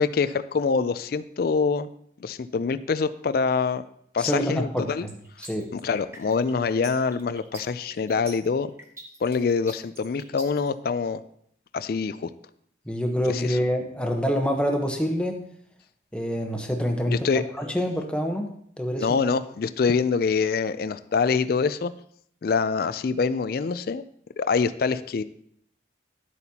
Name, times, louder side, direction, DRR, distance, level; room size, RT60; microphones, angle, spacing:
voice 1, 0.0-1.9 2.2-3.8 4.1-5.1 5.7-8.7 9.2-11.2 11.7-12.3 13.3-13.6 17.1-17.4 19.0-21.9 22.4-24.0 24.4-25.2, left 5 dB, 50° left, 13 dB, 0.3 m, -25 dB
voice 2, 4.2-5.1 5.4-5.7 12.9-15.4 16.1-18.5 18.8-19.1, equal, 5° left, 2 dB, 0.9 m, -26 dB
sound 1, 5.1-10.7, right 1 dB, 15° right, 1.1 m, -44 dB
11.5 x 8.1 x 2.8 m, 0.68 s
head